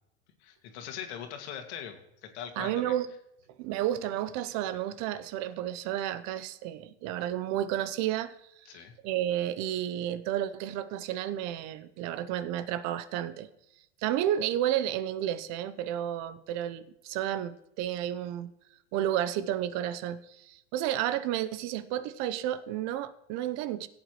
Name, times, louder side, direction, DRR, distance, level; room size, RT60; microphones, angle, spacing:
voice 1, 0.4-2.9 8.7-8.9, left 8 dB, 65° left, 2.2 m, -41 dB
voice 2, 2.6-3.1 3.6-13.5 14.0-18.5 18.9-23.9, right 11 dB, 50° right, 0.8 m, -32 dB
16.5 x 8.3 x 3.1 m
supercardioid pair, 120°, 36 cm